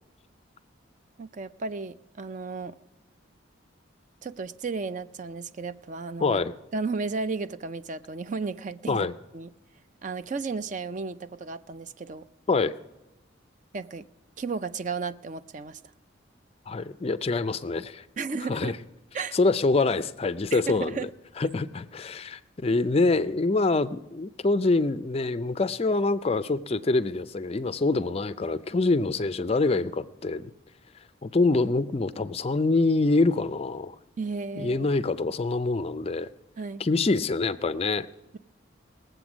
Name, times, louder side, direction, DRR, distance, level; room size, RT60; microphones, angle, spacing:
voice 1, 1.2-2.8 4.2-6.4 6.7-9.0 9.3-9.5 10.0-12.3 13.7-14.0 14.4-15.8 18.2-18.8 19.1-19.4 20.5-21.1 34.2-34.9 36.6-36.8, right 4 dB, 40° right, 13 dB, 0.4 m, -33 dB
voice 2, 6.2-6.5 8.9-9.1 12.5-12.7 16.7-18.0 18.5-18.7 19.3-21.1 21.4-30.5 31.2-33.9 34.6-36.3 36.8-38.1, left 3 dB, 30° left, 14 dB, 0.4 m, -25 dB
19.5 x 7.9 x 6.1 m, 0.96 s
head